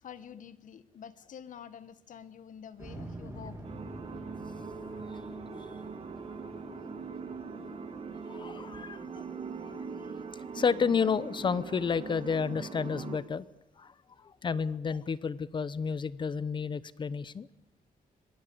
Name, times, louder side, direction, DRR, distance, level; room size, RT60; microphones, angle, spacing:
voice 1, 0.0-3.6, left 8 dB, 55° left, 1.4 m, -47 dB
sound 1, 2.8-11.7, right 1 dB, 15° right, 4.8 m, -47 dB
sound 2, 3.6-13.2, right 5 dB, 40° right, 2.6 m, -42 dB
voice 2, 8.3-9.1 9.6-10.1 10.5-13.5 13.8-13.9 14.2-17.5, left 5 dB, 30° left, 0.9 m, -31 dB
26.0 x 21.5 x 8.6 m
wide cardioid pair, 175°, 15 cm